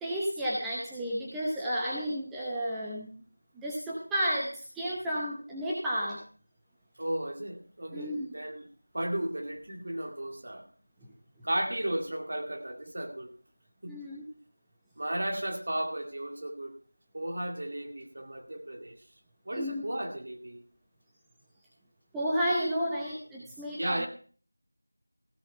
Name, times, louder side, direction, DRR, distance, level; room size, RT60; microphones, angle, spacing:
voice 1, 0.0-3.1 3.5-6.2 7.9-8.3 13.9-14.2 19.5-19.8 22.1-24.1, equal, ahead, -7 dB, 0.8 m, -32 dB
voice 2, 7.0-8.7 8.9-10.7 11.4-13.3 13.8-13.9 15.0-16.7 17.1-19.0 19.5-20.6 23.8-24.1, right 1 dB, 40° right, 3 dB, 2.4 m, -34 dB
16.0 x 7.2 x 5.5 m, 0.42 s
figure-of-eight pair, 175°, 0 cm